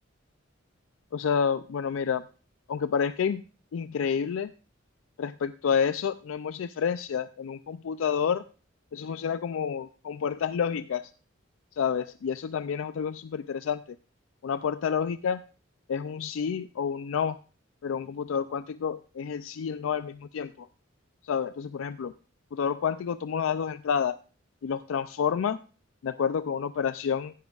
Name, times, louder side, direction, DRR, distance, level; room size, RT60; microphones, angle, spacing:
voice 1, 1.1-2.2 2.7-3.4 3.7-4.5 5.2-8.4 8.9-11.1 11.7-13.8 14.4-15.4 15.9-17.4 17.8-20.7 21.2-22.1 22.5-24.2 24.6-25.6 26.0-27.3, left 7 dB, 85° left, 13 dB, 0.4 m, -29 dB
15.5 x 10.5 x 2.4 m, 0.38 s
head